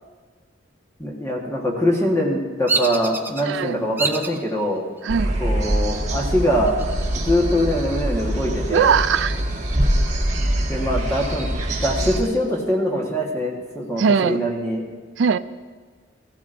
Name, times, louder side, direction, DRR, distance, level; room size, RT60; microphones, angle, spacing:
voice 1, 1.0-4.8 5.4-6.7 7.2-9.0 10.7-14.8, equal, 15° left, -1 dB, 1.3 m, -23 dB
Bird vocalization bird call bird song, 2.7-3.4 4.0-4.4 5.0-5.5 6.7-7.4 7.8-7.9 8.3-9.7, right 3 dB, 10° right, 0.6 m, -28 dB
voice 2, 3.4-3.8 5.0-5.4 8.7-9.4 14.0-14.4 15.2-15.4, right 6 dB, 70° right, 14 dB, 0.4 m, -19 dB
sound 1, 5.1-12.2, right 1 dB, 40° right, 1.8 m, -24 dB
16.0 x 15.5 x 2.6 m, 1.5 s
head